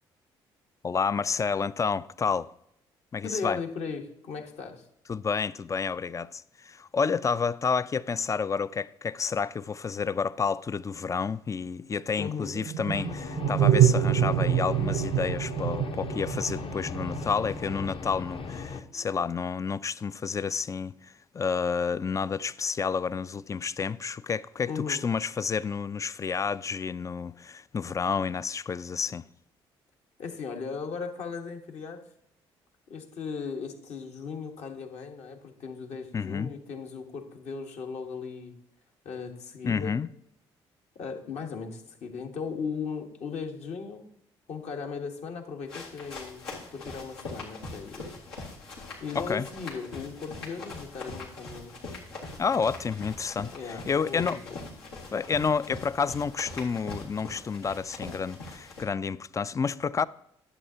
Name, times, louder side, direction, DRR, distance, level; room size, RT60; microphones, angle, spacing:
voice 1, 0.8-2.5 3.1-3.6 5.1-29.3 36.1-36.5 39.6-40.1 49.1-49.5 52.4-54.4 55.1-60.1, left 5 dB, 25° left, 0.4 m, -30 dB
voice 2, 3.2-4.8 12.2-12.5 24.7-25.0 30.2-32.0 32.9-38.5 39.0-40.0 41.0-44.1 44.5-46.5 46.7-48.2 49.0-51.7 53.5-54.4, left 5 dB, 60° left, 1.4 m, -37 dB
sound 1, 12.5-17.9, right 10 dB, 60° right, 0.6 m, -26 dB
sound 2, 12.9-18.8, left 5 dB, 45° left, 0.9 m, -38 dB
sound 3, 45.6-58.8, left 3 dB, 90° left, 2.0 m, -42 dB
11.0 x 7.8 x 2.8 m
hypercardioid pair, 50°, 13 cm